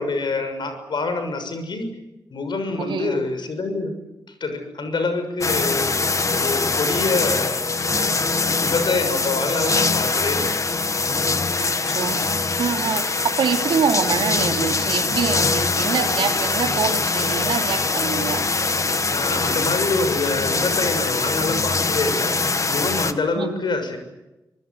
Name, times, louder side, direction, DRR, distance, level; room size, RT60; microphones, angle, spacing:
voice 1, 0.0-1.9 2.3-4.0 4.4-6.0 6.3-7.6 8.6-10.7 19.1-24.0, left 3 dB, 65° left, 8 dB, 6.6 m, -26 dB
voice 2, 2.8-3.2 11.6-12.2 12.6-18.5 23.3-23.6, right 6 dB, 80° right, 5 dB, 2.8 m, -25 dB
sound 1, 5.4-23.1, left 3 dB, 40° left, 1.7 m, -23 dB
25.0 x 20.0 x 9.9 m, 1.0 s
cardioid pair, 60°, 8 cm